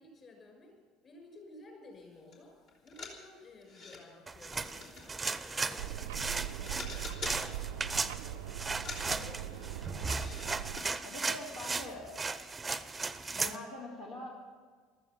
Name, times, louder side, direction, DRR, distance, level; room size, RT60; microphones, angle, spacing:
voice 1, 0.0-8.6 9.0-10.3, left 2 dB, 35° left, 2 dB, 6.3 m, -55 dB
sound 1, 2.3-2.4 2.7-4.0 4.5-6.2 6.4-7.5 7.8-8.2 8.6-10.5 10.8-10.9 11.2-11.3, left 3 dB, 55° left, 3.4 m, -46 dB
sound 2, 4.3-13.6, right 4 dB, 20° right, 0.8 m, -36 dB
sound 3, 5.8-10.8, right 12 dB, 70° right, 0.5 m, -41 dB
voice 2, 9.0-9.4 11.0-12.1 13.3-14.3, left 2 dB, 75° left, -5 dB, 3.1 m, -44 dB
15.0 x 13.5 x 7.0 m, 1.5 s
figure-of-eight pair, 65°, 0 cm